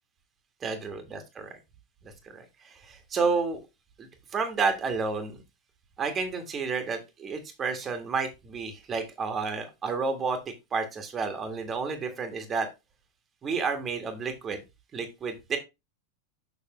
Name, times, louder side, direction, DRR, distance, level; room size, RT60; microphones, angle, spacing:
voice 1, 0.6-1.5 2.3-3.6 4.0-5.4 6.0-12.7 13.4-14.6 14.9-15.6, right 4 dB, 25° right, 6 dB, 1.6 m, -31 dB
6.8 x 6.3 x 3.1 m, 0.23 s
figure-of-eight pair, 90°, 0 cm